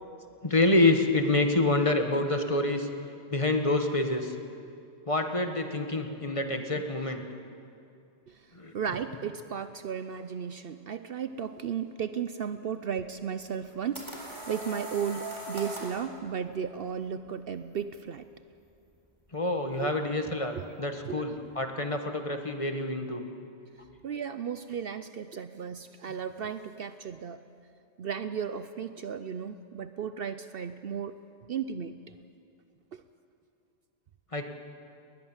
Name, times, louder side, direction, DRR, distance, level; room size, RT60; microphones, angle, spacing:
voice 1, 0.4-2.9 3.3-4.3 5.1-7.2 8.5-8.7 19.3-23.2 34.3-34.4, left 2 dB, 30° left, 5 dB, 1.3 m, -27 dB
voice 2, 8.7-18.3 19.7-19.9 20.5-20.6 21.0-21.2 24.0-27.4 28.0-31.2 31.5-32.1 32.9-33.0, right 7 dB, 60° right, 11 dB, 0.8 m, -35 dB
sound 1, 13.5-16.0, right 1 dB, 25° right, 3.8 m, -40 dB
20.5 x 20.0 x 7.3 m, 2.5 s
omnidirectional pair, 1.2 m